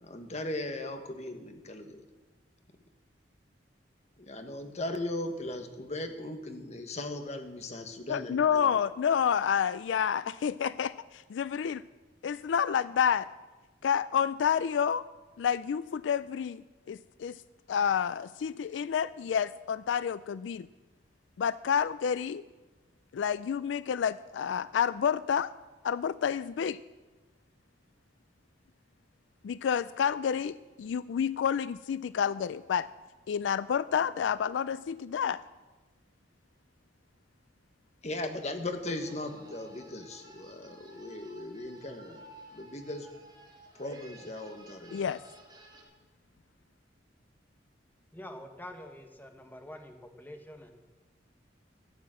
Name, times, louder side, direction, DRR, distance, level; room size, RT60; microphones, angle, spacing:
voice 1, 0.0-2.0 4.2-8.7 38.0-42.2 42.5-43.1 43.8-45.0, left 1 dB, 40° left, 6 dB, 1.4 m, -38 dB
voice 2, 8.1-11.8 12.2-13.3 13.8-15.0 15.4-16.6 16.9-17.4 17.7-20.7 21.4-22.4 23.1-25.5 25.8-26.8 29.4-32.9 33.3-35.4 44.9-45.2, left 7 dB, 80° left, 17 dB, 0.3 m, -29 dB
sound 1, 38.9-45.8, right 1 dB, 25° right, 2.8 m, -54 dB
voice 3, 48.1-50.7, left 1 dB, 10° left, 4 dB, 1.4 m, -46 dB
14.0 x 9.3 x 7.6 m, 1.2 s
head